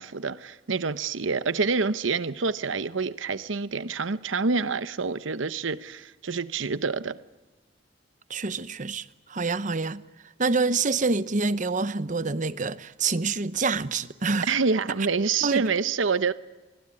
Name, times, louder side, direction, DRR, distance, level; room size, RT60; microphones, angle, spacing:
voice 1, 0.0-7.2 14.5-16.3, right 4 dB, 85° right, 0.9 m, -27 dB
voice 2, 8.3-10.0 10.4-14.6 15.4-15.7, right 4 dB, 40° right, 0.9 m, -27 dB
26.0 x 21.0 x 9.8 m
head